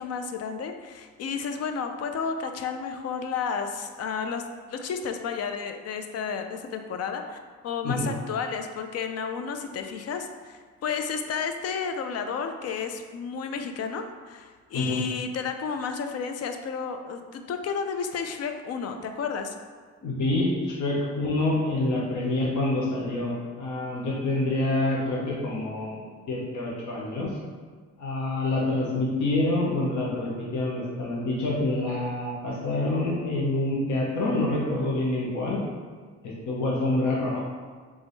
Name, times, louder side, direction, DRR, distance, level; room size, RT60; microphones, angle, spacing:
voice 1, 0.0-4.4 4.7-19.5, left 6 dB, 55° left, 7 dB, 0.5 m, -32 dB
voice 2, 20.0-26.0 26.3-27.3 28.0-35.6 36.2-37.4, left 2 dB, 75° left, -4 dB, 1.1 m, -27 dB
3.5 x 3.4 x 4.0 m, 1.5 s
cardioid pair, 90°, 30 cm